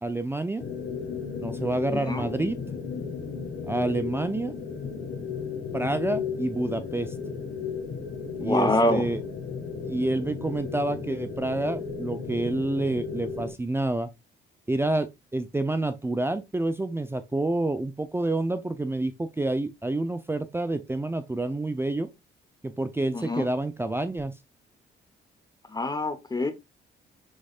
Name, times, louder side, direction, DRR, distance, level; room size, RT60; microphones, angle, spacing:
voice 1, 0.0-0.6 1.4-2.6 3.7-4.5 5.7-7.1 8.4-9.2 9.9-14.1 14.7-22.1 22.6-24.3, right 2 dB, 10° right, 0.5 m, -28 dB
sound 1, 0.6-13.5, left 5 dB, 70° left, 1.5 m, -34 dB
voice 2, 1.9-2.3 8.4-9.0 23.1-23.5 25.7-26.5, left 1 dB, 20° left, 0.9 m, -25 dB
6.4 x 3.2 x 2.4 m
cardioid pair, 90°, 20 cm